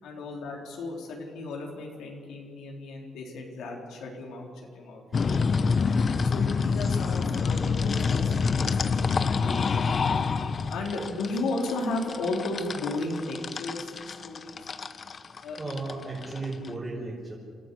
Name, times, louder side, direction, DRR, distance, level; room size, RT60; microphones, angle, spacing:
voice 1, 0.0-4.5 4.7-5.6 6.2-9.6 9.9-10.1 10.7-14.6 15.4-15.8, left 2 dB, 85° left, -1 dB, 4.0 m, -35 dB
sound 1, 5.1-16.7, left 5 dB, 45° left, 0.9 m, -27 dB
voice 2, 15.6-17.4, right 2 dB, 25° right, -5 dB, 5.5 m, -35 dB
27.0 x 13.5 x 8.4 m, 2.1 s
cardioid pair, 90°, 0 cm